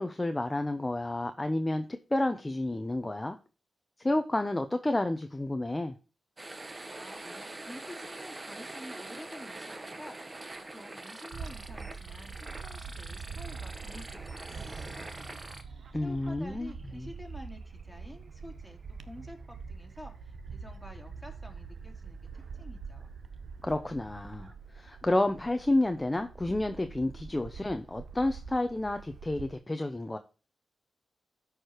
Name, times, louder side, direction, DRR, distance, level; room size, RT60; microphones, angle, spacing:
voice 1, 0.0-3.4 4.0-5.9 15.9-16.7 17.0-17.1 23.6-30.2, left 1 dB, 20° left, 0.7 m, -30 dB
sound 1, 6.4-15.6, right 2 dB, 30° right, 1.1 m, -44 dB
voice 2, 6.9-15.4 15.7-23.1, left 1 dB, ahead, 2.7 m, -50 dB
Bird / Wind, 11.3-29.6, right 5 dB, 75° right, 0.7 m, -45 dB
sound 2, 14.5-25.1, right 3 dB, 55° right, 1.1 m, -51 dB
13.0 x 4.9 x 3.0 m
cardioid pair, 65°, 0 cm